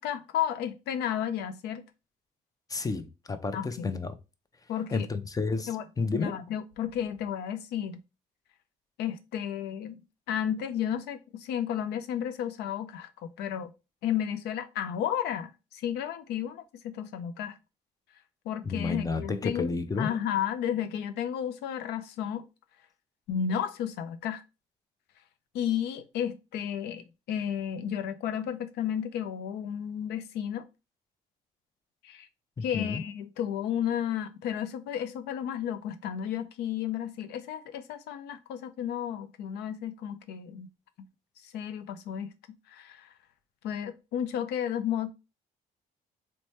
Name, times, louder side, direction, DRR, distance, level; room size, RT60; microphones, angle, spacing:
voice 1, 0.0-1.8 3.5-4.0 4.7-5.1 5.7-5.8 6.1-8.0 9.0-10.0 10.3-13.7 14.0-17.6 18.5-22.4 23.3-24.4 25.5-30.6 32.0-32.3 32.6-40.7 41.4-42.3 42.7-43.1 43.6-45.1, left 9 dB, 80° left, 0.5 m, -32 dB
voice 2, 2.7-4.2 4.9-6.4 18.6-20.1 32.6-33.0, left 4 dB, 20° left, 0.5 m, -31 dB
3.1 x 2.1 x 4.1 m
supercardioid pair, 75°, 17 cm